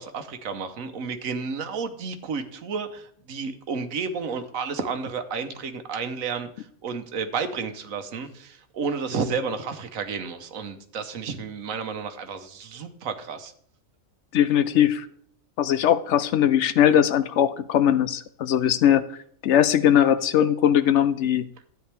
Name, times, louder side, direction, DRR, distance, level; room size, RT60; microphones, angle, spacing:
voice 1, 0.0-13.5, right 5 dB, 85° right, 9 dB, 1.4 m, -31 dB
voice 2, 14.3-15.1 15.6-19.0 19.4-21.5, left 10 dB, 70° left, 13 dB, 0.8 m, -20 dB
13.0 x 9.2 x 3.4 m, 0.62 s
omnidirectional pair, 1.4 m